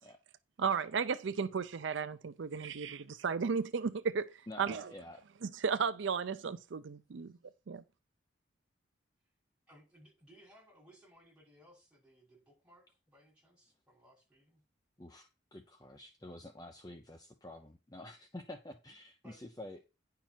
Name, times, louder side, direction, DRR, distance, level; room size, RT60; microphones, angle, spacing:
voice 1, 0.6-4.9 5.4-7.3 7.7-7.8, right 5 dB, 70° right, 0.5 m, -34 dB
voice 2, 4.5-5.3 15.0-19.8, left 1 dB, 20° left, 0.6 m, -49 dB
voice 3, 9.7-14.6 19.2-19.4, equal, 5° right, 5.9 m, -62 dB
10.0 x 5.8 x 4.4 m
head